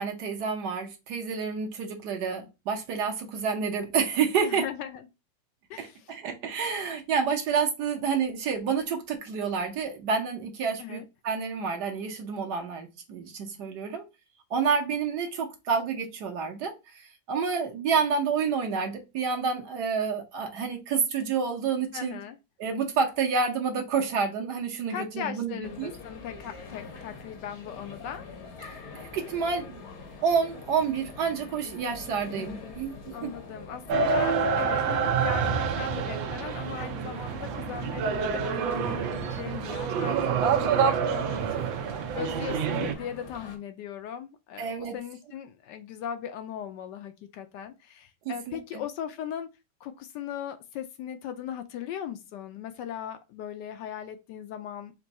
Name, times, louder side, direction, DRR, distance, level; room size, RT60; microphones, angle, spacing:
voice 1, 0.0-4.6 5.8-14.0 14.5-22.2 22.6-25.9 28.9-29.8 30.2-32.9 33.2-33.3 44.6-44.9 48.2-48.8, right 6 dB, 65° right, 1.4 m, -29 dB
voice 2, 4.4-5.1 5.7-6.1 10.8-11.0 21.9-22.4 24.9-28.3 33.1-49.5 49.8-54.9, left 9 dB, 75° left, 1.1 m, -38 dB
sound 1, 25.6-43.6, left 4 dB, 50° left, 1.0 m, -44 dB
sound 2, 33.9-42.9, right 6 dB, 90° right, 1.4 m, -27 dB
4.5 x 2.5 x 4.0 m
omnidirectional pair, 2.0 m